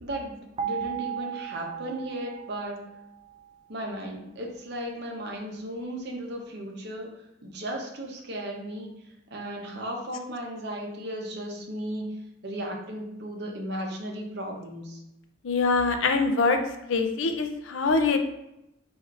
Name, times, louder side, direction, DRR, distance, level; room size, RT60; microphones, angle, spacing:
voice 1, 0.0-2.8 3.7-7.1 7.4-8.9 9.3-12.1 12.4-15.0, right 1 dB, 60° right, 0 dB, 0.9 m, -35 dB
sound 1, 0.6-3.5, right 8 dB, 30° right, 0.4 m, -36 dB
voice 2, 15.4-16.6 16.9-18.2, left 4 dB, 90° left, 6 dB, 0.5 m, -24 dB
4.9 x 3.5 x 2.5 m, 0.85 s
head